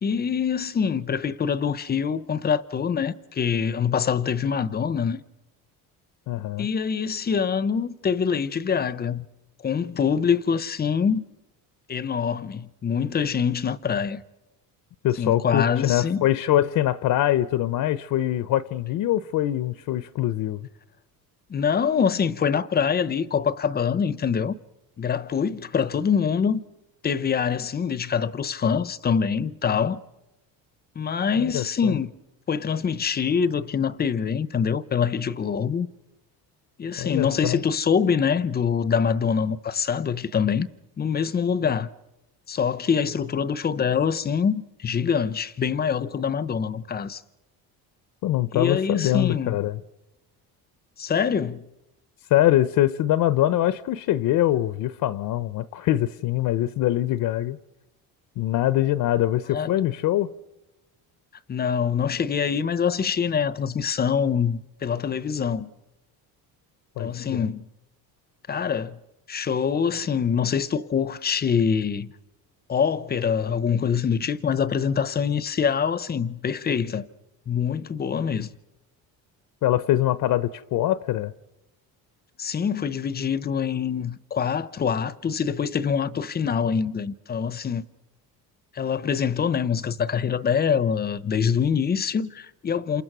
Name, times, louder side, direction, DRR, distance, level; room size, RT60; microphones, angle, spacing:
voice 1, 0.0-5.2 6.6-9.3 9.6-11.2 11.9-14.2 15.2-16.2 21.5-24.5 25.0-26.6 27.0-30.0 31.0-32.1 32.5-35.9 36.8-40.7 41.0-41.9 42.5-47.2 48.5-49.6 51.0-51.6 59.5-59.7 61.5-65.7 67.0-67.6 68.5-69.0 69.3-72.1 72.7-77.1 77.5-78.5 82.4-87.8 88.7-93.0, left 6 dB, 25° left, 0.8 m, -24 dB
voice 2, 6.3-6.7 15.0-20.6 31.4-32.0 37.0-37.6 48.2-49.8 52.3-57.6 58.4-60.3 67.0-67.4 79.6-81.3, left 13 dB, 60° left, 0.9 m, -23 dB
29.0 x 27.5 x 6.2 m
cardioid pair, 155°, 37 cm